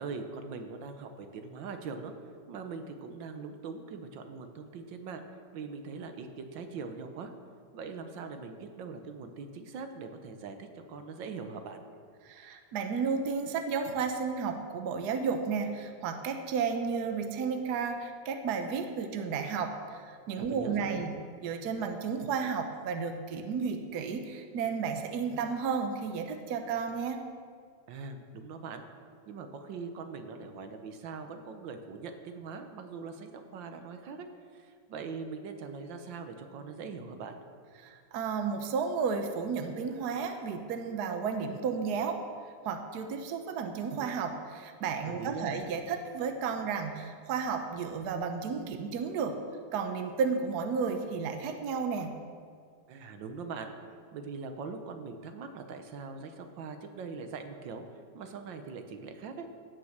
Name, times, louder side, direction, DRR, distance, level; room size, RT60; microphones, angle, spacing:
voice 1, 0.0-2.1 2.5-5.2 5.5-7.3 7.7-11.8 20.4-21.0 27.9-28.9 29.3-34.3 34.5-37.3 45.0-45.5 52.9-53.7 54.1-57.8 58.1-59.5, right 5 dB, 80° right, 7 dB, 1.6 m, -41 dB
voice 2, 12.2-21.1 21.4-27.2 37.8-42.2 42.6-49.4 49.7-52.1, right 5 dB, 65° right, 6 dB, 1.3 m, -33 dB
16.0 x 6.3 x 6.5 m, 2.1 s
omnidirectional pair, 2.0 m